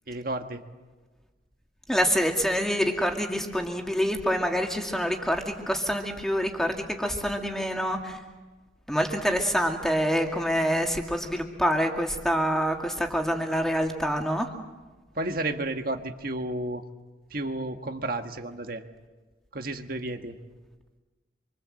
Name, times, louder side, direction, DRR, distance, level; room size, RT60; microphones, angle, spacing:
voice 1, 0.1-0.6 15.1-16.8 17.3-18.8 19.5-20.4, right 2 dB, 50° right, 5 dB, 1.6 m, -32 dB
voice 2, 1.9-8.2 8.9-14.5, equal, 5° left, 3 dB, 2.2 m, -26 dB
27.0 x 25.0 x 7.7 m, 1.3 s
head